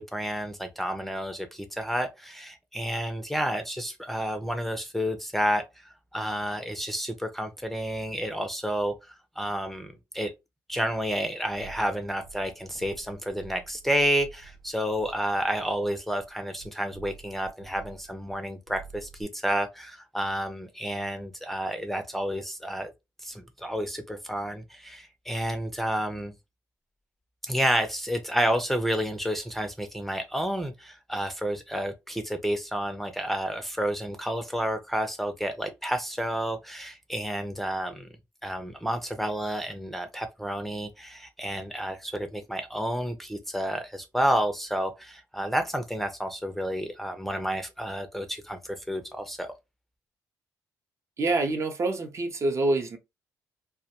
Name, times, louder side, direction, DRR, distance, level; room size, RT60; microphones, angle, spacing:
voice 1, 0.0-8.9 9.4-10.3 10.7-22.9 23.2-26.3 27.4-38.1 38.4-49.5, equal, 5° left, 0.5 m, -30 dB
sound 1, 11.5-18.4 18.7-19.2, right 6 dB, 90° right, 1.0 m, -50 dB
voice 2, 51.2-53.0, right 2 dB, 45° right, 0.6 m, -26 dB
2.2 x 2.1 x 2.8 m
supercardioid pair, 65°, 7 cm